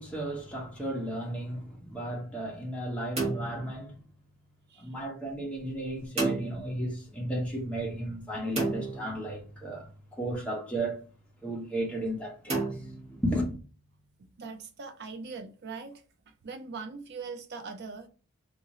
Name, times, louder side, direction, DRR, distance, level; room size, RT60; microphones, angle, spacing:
voice 1, 0.0-3.9 4.8-9.9 10.2-11.0 11.4-12.8 13.2-13.5, right 1 dB, 5° left, 0.9 m, -34 dB
sound 1, 3.2-4.5 6.2-7.2 8.6-9.8 12.5-13.7, right 2 dB, 30° right, 1.4 m, -34 dB
voice 2, 14.4-16.0 16.4-18.1, right 4 dB, 50° right, 0.4 m, -41 dB
3.7 x 2.5 x 3.0 m
head